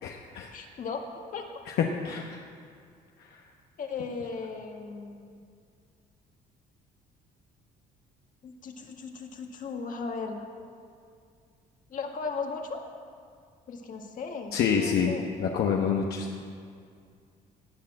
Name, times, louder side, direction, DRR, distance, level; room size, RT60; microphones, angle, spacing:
voice 1, 0.0-0.5 1.7-1.8 2.0-2.4 14.5-15.1 15.4-16.3, left 6 dB, 70° left, 0 dB, 1.1 m, -27 dB
voice 2, 0.5-1.0 1.3-1.5 3.8-5.2 8.4-10.5 11.9-12.8 13.7-15.3, left 5 dB, 50° left, 3 dB, 1.8 m, -36 dB
18.5 x 6.7 x 7.6 m, 2.3 s
cardioid pair, 110°, 17 cm